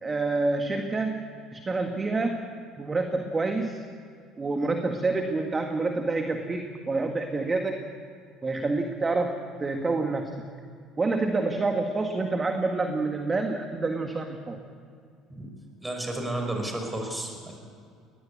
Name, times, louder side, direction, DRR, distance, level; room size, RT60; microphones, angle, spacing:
voice 1, 0.0-2.4 2.8-3.9 4.4-7.8 8.4-10.4 11.0-14.6, right 3 dB, 25° right, 4 dB, 1.9 m, -28 dB
voice 2, 15.8-17.6, right 1 dB, 10° right, 3 dB, 5.5 m, -32 dB
21.5 x 20.0 x 8.6 m, 2.3 s
hypercardioid pair, 75°, 0 cm